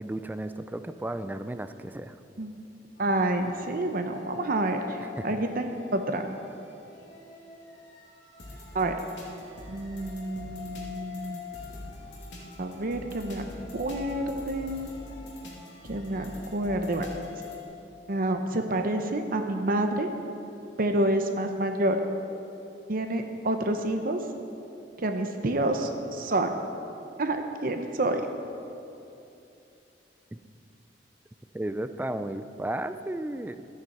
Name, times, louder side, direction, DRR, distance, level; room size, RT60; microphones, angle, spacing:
voice 1, 0.0-2.2 5.0-5.4 31.5-33.7, right 1 dB, 10° right, 11 dB, 0.4 m, -34 dB
sound 1, 3.0-17.6, left 4 dB, 85° left, 2.5 m, -44 dB
voice 2, 3.0-6.4 8.7-9.0 9.7-11.4 12.6-13.5 13.7-14.9 15.8-17.1 18.1-20.1 20.8-22.0 22.9-24.2 25.0-26.5 27.2-28.2, right 1 dB, 50° right, 6 dB, 0.7 m, -28 dB
13.5 x 9.2 x 5.5 m, 2.8 s
head